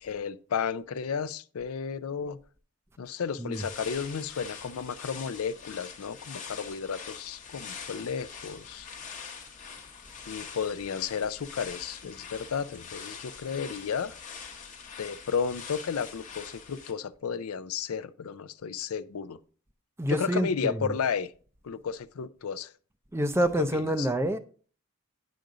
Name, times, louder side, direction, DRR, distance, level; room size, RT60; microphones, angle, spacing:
voice 1, 0.0-2.4 3.0-8.9 10.3-14.2 15.0-19.4 20.1-21.3 21.6-22.7 23.6-24.1, left 6 dB, 75° left, 0.5 m, -33 dB
sound 1, 3.5-16.9, left 6 dB, 35° left, 0.9 m, -44 dB
voice 2, 20.0-21.0 23.1-24.4, right 1 dB, 10° right, 0.4 m, -27 dB
9.2 x 5.1 x 3.8 m
head